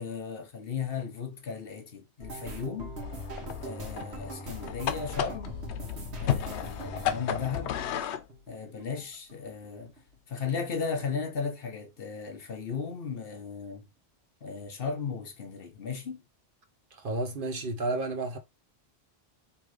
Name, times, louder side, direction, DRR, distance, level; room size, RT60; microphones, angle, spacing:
voice 1, 0.0-3.0 3.6-5.6 6.0-7.7 8.5-9.9 10.3-13.9 14.4-16.2, left 5 dB, 65° left, 1.1 m, -36 dB
sound 1, 2.2-9.0 9.3-10.3 10.6-11.0 11.3-11.5, left 1 dB, 80° right, 1.5 m, -41 dB
sound 2, 3.0-8.3, left 9 dB, 85° left, 0.9 m, -34 dB
voice 2, 16.9-18.4, right 2 dB, 55° right, 0.9 m, -31 dB
3.5 x 2.8 x 4.7 m
omnidirectional pair, 1.1 m